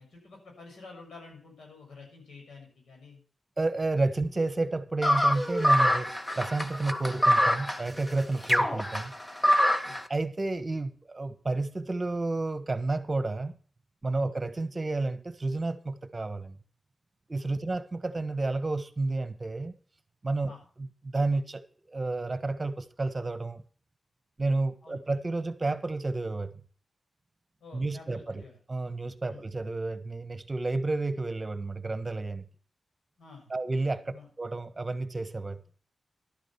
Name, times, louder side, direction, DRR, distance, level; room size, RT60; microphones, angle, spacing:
voice 1, 0.0-3.2 9.8-10.0 14.2-14.3 17.5-17.7 20.4-20.6 24.8-25.1 27.6-28.6 29.3-29.5 33.2-33.5 34.1-34.3, left 4 dB, 90° left, 1 dB, 6.4 m, -49 dB
voice 2, 3.6-6.1 6.3-9.1 10.1-13.5 14.0-16.6 17.3-19.7 20.2-20.5 20.8-20.9 21.1-21.6 21.9-23.6 24.4-26.5 27.7-28.4 28.7-32.4 33.5-35.6, right 2 dB, 35° right, 11 dB, 1.4 m, -31 dB
sound 1, 5.0-10.0, equal, 20° left, 1.5 m, -25 dB
12.0 x 9.1 x 5.9 m, 0.42 s
cardioid pair, 60°, 0 cm